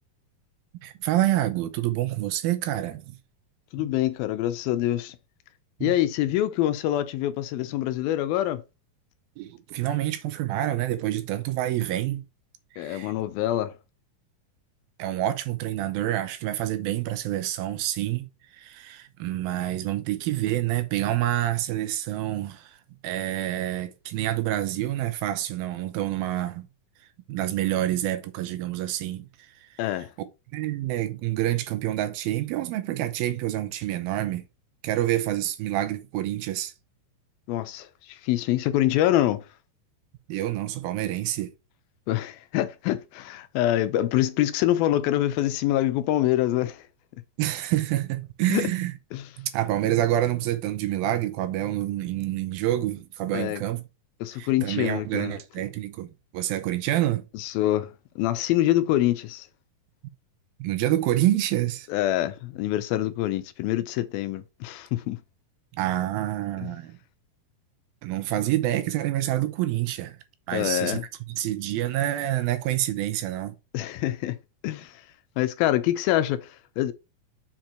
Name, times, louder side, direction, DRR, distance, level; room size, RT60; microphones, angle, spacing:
voice 1, 0.8-3.2 3.8-3.9 5.8-5.9 9.4-12.2 12.7-13.1 15.0-18.3 18.6-22.8 23.0-26.7 27.3-29.3 30.5-34.4 34.8-36.7 40.3-41.5 47.4-48.9 49.4-53.8 54.4-57.2 60.6-61.9 65.7-67.0 68.0-70.2 70.5-71.0 71.3-73.5, right 13 dB, 85° right, 2.7 m, -27 dB
voice 2, 3.7-5.2 5.8-8.6 12.8-13.8 29.8-30.1 37.5-39.4 42.1-46.9 48.5-48.7 49.1-49.3 53.3-53.6 54.2-55.4 57.3-59.5 61.9-65.2 70.5-71.0 73.7-74.4 74.6-75.1 75.4-76.9, left 13 dB, 85° left, 2.6 m, -25 dB
7.3 x 4.5 x 4.3 m
omnidirectional pair, 4.2 m